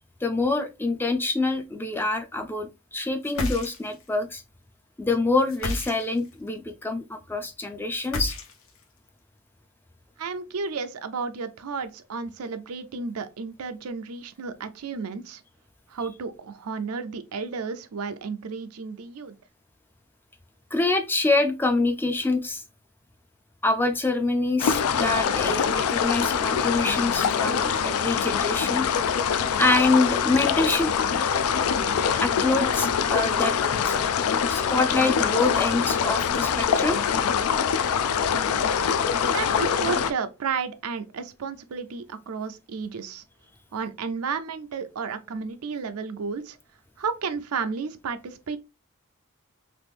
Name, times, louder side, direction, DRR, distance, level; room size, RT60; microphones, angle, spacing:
voice 1, 0.2-4.4 5.0-8.3 20.7-22.6 23.6-28.9 29.6-30.9 32.1-33.6 33.8-33.9 34.5-37.0, left 3 dB, 10° left, 0.3 m, -25 dB
sound 1, 3.2-4.1 5.5-6.3 8.0-8.8, left 1 dB, 70° left, 0.8 m, -31 dB
voice 2, 10.2-15.4 15.9-19.3 39.3-43.2 43.7-46.6 47.0-48.6, right 5 dB, 90° right, 0.5 m, -32 dB
sound 2, 24.6-40.1, left 7 dB, 85° left, 0.4 m, -24 dB
3.0 x 2.5 x 3.4 m
head